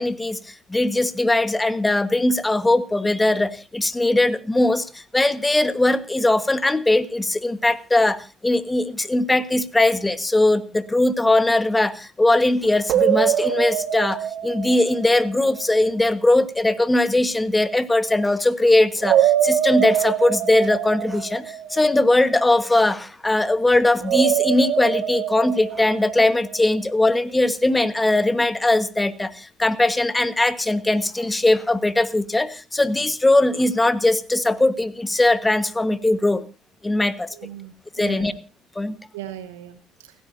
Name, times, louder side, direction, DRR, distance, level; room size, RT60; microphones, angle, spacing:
voice 1, 0.0-36.5 36.8-37.3 38.0-38.3 38.7-39.0, left 2 dB, 15° left, 14 dB, 1.3 m, -20 dB
sound 1, 12.9-15.9 19.0-22.3 24.0-26.8, right 10 dB, 60° right, 1.3 m, -24 dB
voice 2, 37.3-38.3 39.1-40.1, right 12 dB, 75° right, 11 dB, 1.1 m, -38 dB
29.5 x 10.0 x 2.7 m, 0.29 s
hypercardioid pair, 55°, 0 cm